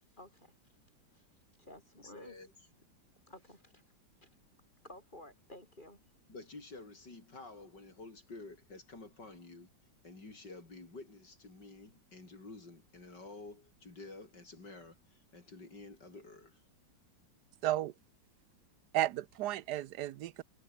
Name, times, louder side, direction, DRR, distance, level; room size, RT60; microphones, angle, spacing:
voice 1, 0.1-0.5 1.1-1.3 1.6-2.3 3.3-3.8 4.2-4.3 4.8-6.0, left 1 dB, 25° left, 7.9 m, -53 dB
voice 2, 2.0-2.5 6.3-9.7 10.0-16.6, left 3 dB, 60° left, 5.8 m, -50 dB
voice 3, 17.6-17.9 18.9-20.4, right 14 dB, 70° right, 1.1 m, -33 dB
omnidirectional pair, 2.1 m